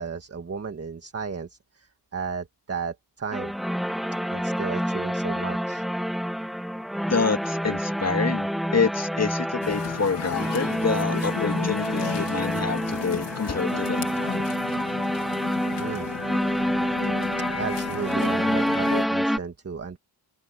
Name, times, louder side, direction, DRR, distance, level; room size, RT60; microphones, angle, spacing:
voice 1, 0.0-3.5 4.3-5.8 15.8-16.1 17.5-20.0, right 5 dB, 35° right, 1.6 m, -34 dB
sound 1, 3.3-19.4, equal, ahead, 0.3 m, -27 dB
voice 2, 7.1-8.5 8.7-14.1, left 5 dB, 35° left, 1.9 m, -27 dB
sound 2, 9.6-19.0, left 8 dB, 70° left, 2.5 m, -34 dB
wide cardioid pair, 110°, 44 cm